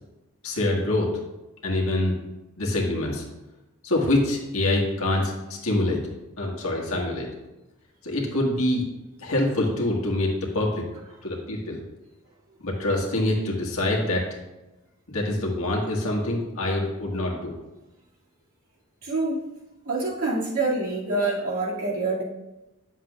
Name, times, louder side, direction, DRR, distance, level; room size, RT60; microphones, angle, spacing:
voice 1, 0.4-1.1 1.6-2.2 2.6-3.2 3.8-6.0 6.4-7.3 8.0-8.8 9.2-10.7 11.2-11.8 12.6-14.2 15.1-17.5, left 1 dB, 75° left, -2 dB, 1.8 m, -25 dB
voice 2, 19.0-19.4 19.8-22.2, right 2 dB, 75° right, -6 dB, 2.4 m, -26 dB
9.8 x 7.2 x 2.5 m, 1.0 s
head